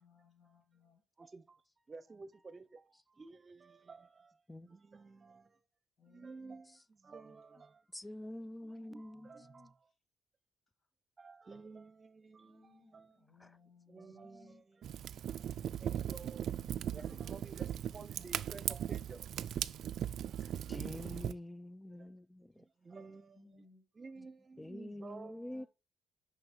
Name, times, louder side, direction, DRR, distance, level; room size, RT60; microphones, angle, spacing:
voice 1, 0.0-1.0 6.0-6.6 7.3-7.6 8.6-9.7 12.4-14.6 15.9-17.4 23.3-23.9 24.1-25.0 25.5-25.7, left 5 dB, 45° left, 4.0 m, -64 dB
voice 2, 1.2-5.6 6.1-7.8 8.6-9.8 11.2-13.3 13.9-14.9 15.3-16.6 16.9-19.3 20.2-21.3 21.9-22.1 22.4-23.6 23.9-25.6, right 4 dB, 35° right, 0.9 m, -53 dB
voice 3, 7.9-9.3 20.7-22.7 24.6-25.6, left 1 dB, 10° left, 0.4 m, -46 dB
Fire, 14.8-21.3, right 10 dB, 70° right, 0.3 m, -38 dB
6.1 x 5.6 x 4.5 m
cardioid pair, 90°, 0 cm